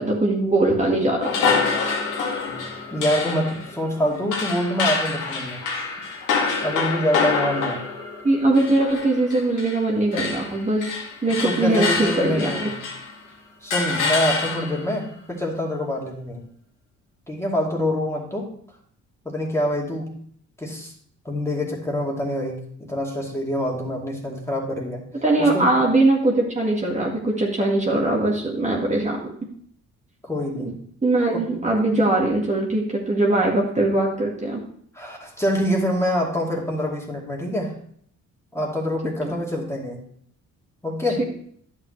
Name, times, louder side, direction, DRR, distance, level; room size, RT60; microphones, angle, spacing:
voice 1, 0.0-1.5 8.2-12.7 25.2-29.2 30.6-30.7 31.0-34.6 39.2-39.3 41.2-41.3, right 2 dB, 25° right, -2 dB, 1.8 m, -21 dB
sound 1, 1.2-9.9 10.1-13.2 13.7-14.9, left 4 dB, 85° left, 2.3 m, -26 dB
voice 2, 2.9-5.6 6.6-7.8 11.4-12.8 13.6-16.4 17.3-18.5 19.2-20.2 20.6-20.9 21.2-25.0 25.4-25.7 30.2-30.7 31.5-31.7 34.9-37.7 38.5-40.0 40.8-41.2, equal, 10° left, -2 dB, 2.4 m, -25 dB
10.5 x 7.3 x 3.2 m, 0.62 s
cardioid pair, 90°, 30 cm